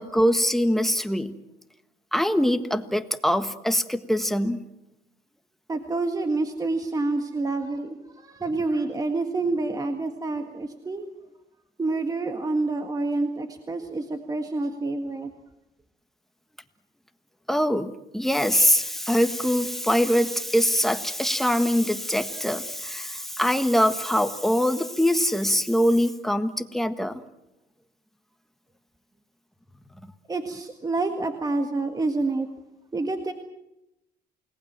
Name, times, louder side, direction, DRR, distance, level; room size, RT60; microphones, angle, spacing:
voice 1, 0.0-1.4 2.1-4.6 17.5-27.2, equal, ahead, 8 dB, 1.5 m, -23 dB
voice 2, 5.7-11.1 11.8-15.3 30.3-32.5 32.9-33.3, right 3 dB, 20° right, 6 dB, 1.8 m, -28 dB
29.0 x 19.0 x 7.5 m, 0.92 s
cardioid pair, 110°, 17 cm